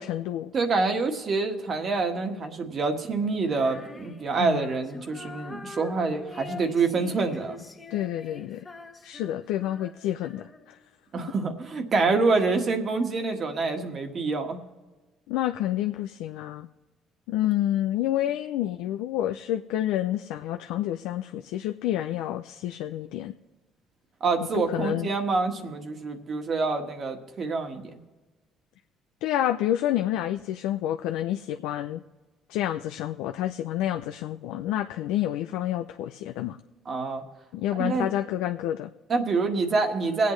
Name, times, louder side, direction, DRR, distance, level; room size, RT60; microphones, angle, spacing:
voice 1, 0.0-0.5 4.4-4.7 7.9-8.7 9.0-10.5 15.3-16.7 17.3-23.3 24.5-25.1 29.2-32.0 32.5-36.6 37.5-38.9, left 12 dB, 85° left, 6 dB, 0.4 m, -29 dB
voice 2, 0.5-7.6 11.1-14.6 24.2-27.8 36.9-37.2 37.7-38.1 39.1-40.3, right 4 dB, 45° right, 5 dB, 1.6 m, -26 dB
Female singing, 3.5-10.8, left 3 dB, 25° left, 1.3 m, -44 dB
24.0 x 8.3 x 3.2 m, 1.2 s
cardioid pair, 95°, 0 cm